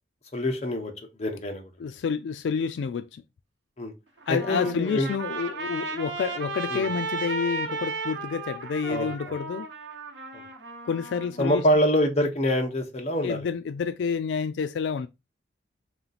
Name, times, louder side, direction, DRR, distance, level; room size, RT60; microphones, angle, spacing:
voice 1, 0.3-0.9 1.2-1.7 3.8-3.9 4.3-5.1 6.7-6.9 8.9-9.3 10.3-10.4 11.4-13.5, equal, 40° left, 1.0 m, -25 dB
voice 2, 1.8-3.2 4.3-9.7 10.8-11.6 13.2-15.1, left 6 dB, 85° left, 0.3 m, -29 dB
Trumpet, 4.2-11.6, right 3 dB, 75° right, 0.9 m, -35 dB
3.8 x 3.0 x 4.0 m
head